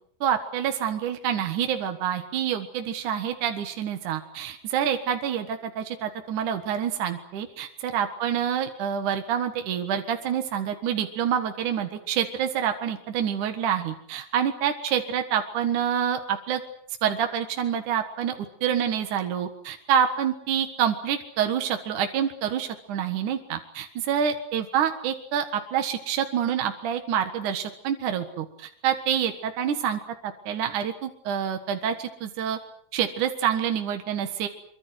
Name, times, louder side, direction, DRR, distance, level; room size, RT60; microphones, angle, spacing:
voice 1, 0.2-16.6 17.0-32.6 32.9-34.5, right 8 dB, 65° right, 6 dB, 3.0 m, -27 dB
24.5 x 24.5 x 7.9 m, 0.63 s
omnidirectional pair, 3.9 m